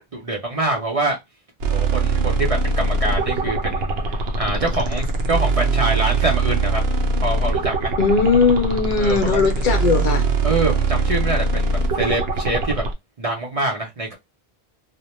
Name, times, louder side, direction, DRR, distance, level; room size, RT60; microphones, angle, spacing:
voice 1, 0.1-1.2 1.7-6.8 7.2-7.9 9.0-9.5 10.4-12.8 13.2-14.1, right 2 dB, 45° right, 0.5 m, -25 dB
sound 1, 1.6-12.9, right 3 dB, 75° right, 0.8 m, -22 dB
voice 2, 8.0-10.2, left 4 dB, 60° left, 0.7 m, -18 dB
2.1 x 2.0 x 2.9 m
omnidirectional pair, 1.1 m